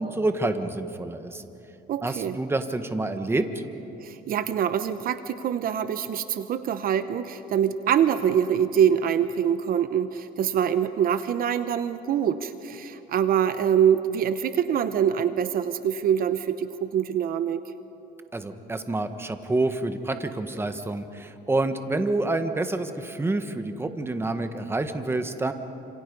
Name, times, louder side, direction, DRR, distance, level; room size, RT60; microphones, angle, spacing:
voice 1, 0.0-1.4 2.0-3.4 18.3-25.5, right 2 dB, 15° right, 8 dB, 1.5 m, -28 dB
voice 2, 1.9-2.4 4.0-17.6, right 9 dB, 60° right, 11 dB, 0.9 m, -24 dB
30.0 x 27.0 x 5.4 m, 3.0 s
cardioid pair, 110°, 17 cm